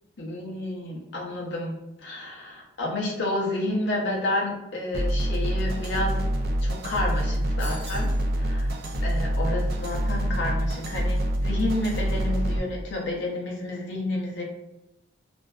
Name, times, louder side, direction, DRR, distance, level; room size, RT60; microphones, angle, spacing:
voice 1, 0.2-1.7 2.0-6.2 6.6-8.1 8.4-8.7 9.0-14.4, left 1 dB, 60° left, -1 dB, 0.6 m, -30 dB
sound 1, 4.9-12.6, equal, 50° right, 0.3 m, -26 dB
sound 2, 7.6-8.2, equal, 5° left, 1.0 m, -42 dB
2.5 x 2.2 x 2.2 m, 0.97 s
head